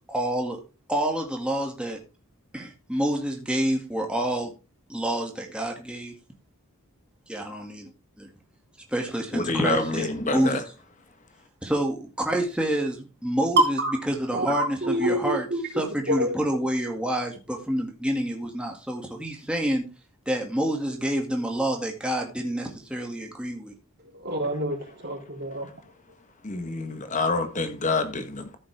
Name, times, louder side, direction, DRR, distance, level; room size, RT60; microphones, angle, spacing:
voice 1, 0.1-0.6 0.9-2.0 2.5-4.5 4.9-6.1 7.3-7.9 8.2-8.3 8.9-10.5 11.6-13.8 14.1-15.5 15.8-19.9 20.3-23.7, right 1 dB, 5° right, 2.0 m, -28 dB
voice 2, 9.3-10.6 26.4-28.6, left 2 dB, 35° left, 1.3 m, -27 dB
voice 3, 14.3-15.6 16.1-16.3 24.1-25.7, equal, 50° right, 3.6 m, -28 dB
14.0 x 7.7 x 3.4 m
head